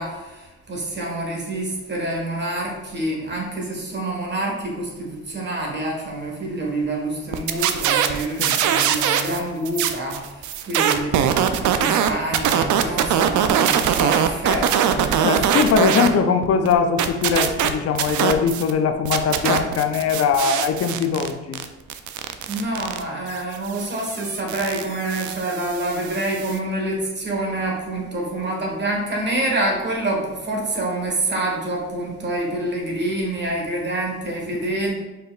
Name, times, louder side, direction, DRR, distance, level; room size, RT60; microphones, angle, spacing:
voice 1, 0.0-15.6 15.9-16.0 22.5-34.9, right 1 dB, 35° right, -1 dB, 1.4 m, -27 dB
sound 1, 7.3-9.4 9.6-16.1 16.4-18.7 19.0-26.6, right 9 dB, 75° right, 0.5 m, -22 dB
voice 2, 15.2-21.6 34.6-34.7, left 6 dB, 55° left, 7 dB, 0.5 m, -21 dB
4.8 x 4.6 x 2.4 m, 1.1 s
cardioid pair, 90°, 30 cm